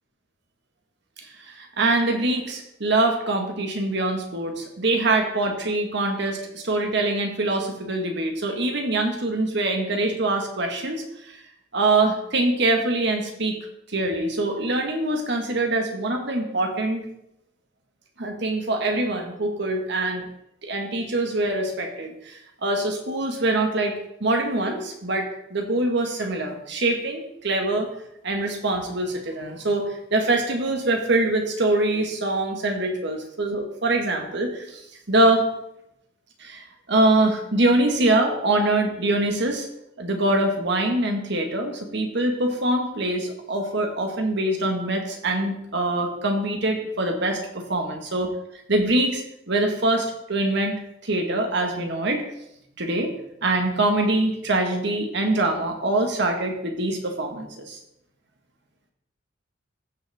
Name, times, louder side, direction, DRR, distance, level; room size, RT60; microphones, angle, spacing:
voice 1, 1.5-11.4 11.7-13.6 13.9-17.0 18.2-20.2 20.6-27.9 28.2-34.8 35.1-35.5 36.4-39.7 40.0-48.3 48.7-52.2 52.8-53.2 53.4-57.8, right 2 dB, 65° right, 3 dB, 1.7 m, -24 dB
15.5 x 5.5 x 3.6 m, 0.79 s
head